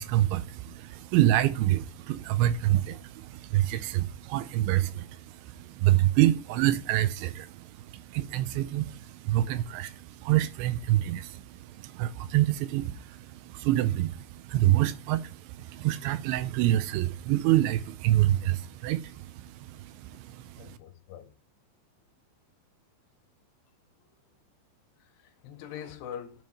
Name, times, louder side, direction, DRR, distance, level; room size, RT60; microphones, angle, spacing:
voice 1, 0.0-20.8, right 14 dB, 85° right, 2.8 m, -27 dB
voice 2, 20.6-21.3 25.0-26.4, left 9 dB, 80° left, 3.5 m, -43 dB
8.8 x 6.3 x 4.2 m
omnidirectional pair, 5.5 m